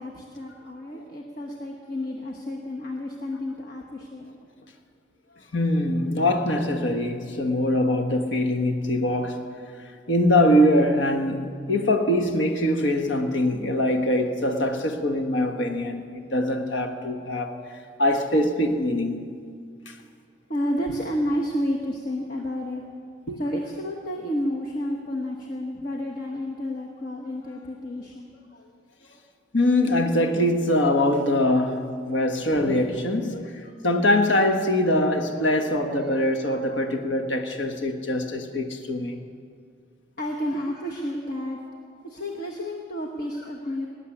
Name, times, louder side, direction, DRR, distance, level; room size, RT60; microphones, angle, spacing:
voice 1, 0.0-4.4 5.3-5.5 20.5-22.8 23.4-28.7 29.0-29.2 31.0-31.1 31.8-31.9 33.3-33.7 35.5-35.6 36.7-36.8 40.2-41.8 42.0-43.9, equal, 50° left, 1.2 m, -31 dB
voice 2, 5.5-9.5 10.1-17.6 18.0-19.3 19.9-20.0 23.3-23.4 29.5-39.2, left 1 dB, 75° left, 1.3 m, -23 dB
19.0 x 7.8 x 9.9 m
head